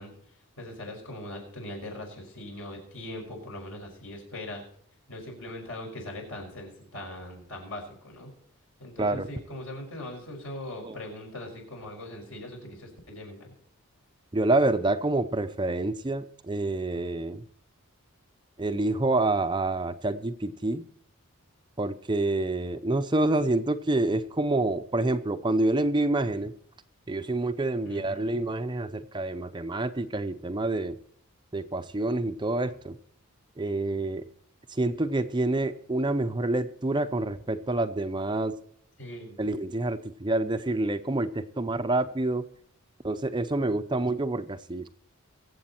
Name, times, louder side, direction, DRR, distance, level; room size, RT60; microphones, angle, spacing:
voice 1, 0.0-4.6 5.1-8.3 8.8-13.5 27.8-28.4 39.0-39.4, left 1 dB, 65° left, 1 dB, 5.7 m, -41 dB
voice 2, 14.3-17.4 18.6-20.8 21.8-26.5 27.1-31.0 31.5-33.0 33.6-34.3 34.7-38.6 39.4-42.5 43.0-44.9, right 2 dB, 20° right, 9 dB, 0.6 m, -27 dB
23.0 x 7.9 x 4.3 m, 0.66 s
head